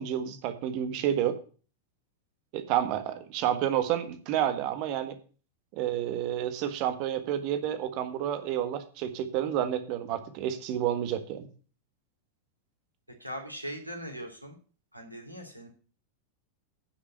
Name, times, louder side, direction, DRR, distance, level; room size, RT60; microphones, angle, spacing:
voice 1, 0.0-1.4 2.5-5.2 5.7-11.5, right 10 dB, 45° right, 9 dB, 1.7 m, -30 dB
voice 2, 13.2-14.5 14.9-15.7, equal, 90° right, 2 dB, 3.2 m, -40 dB
9.7 x 6.2 x 7.9 m, 0.39 s
figure-of-eight pair, 90°, 0 cm